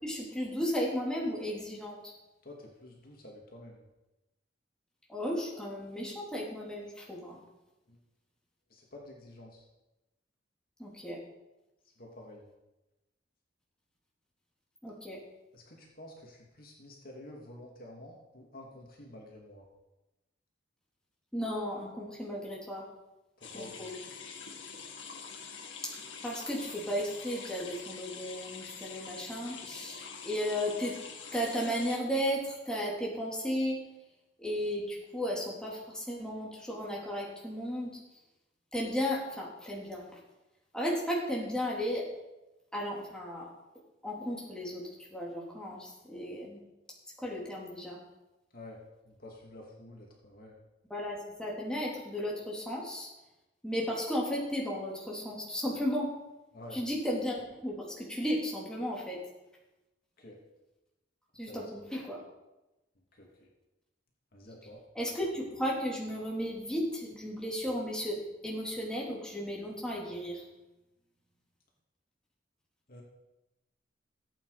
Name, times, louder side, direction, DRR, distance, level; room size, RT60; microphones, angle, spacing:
voice 1, 0.0-2.1 5.1-7.4 10.8-11.2 14.8-15.2 21.3-22.8 23.5-23.9 26.2-31.0 31.3-33.8 34.4-38.0 38.7-40.0 40.7-42.1 42.7-43.5 44.0-44.8 45.1-46.6 47.2-48.0 50.9-53.1 53.6-56.1 56.7-57.4 57.6-59.2 61.3-62.2 65.0-68.2 68.4-70.4, equal, 5° left, -4 dB, 3.5 m, -34 dB
voice 2, 2.4-3.9 7.9-8.0 8.7-9.6 12.0-12.5 15.5-19.7 23.4-23.8 48.5-48.8 49.0-50.6 56.5-56.8 60.2-60.4 61.5-61.6 63.1-63.5 64.3-64.8 72.9-73.0, left 1 dB, 50° left, -1 dB, 2.6 m, -49 dB
sound 1, 23.4-32.0, left 6 dB, 80° left, 2.1 m, -45 dB
16.5 x 8.9 x 5.1 m, 1.0 s
head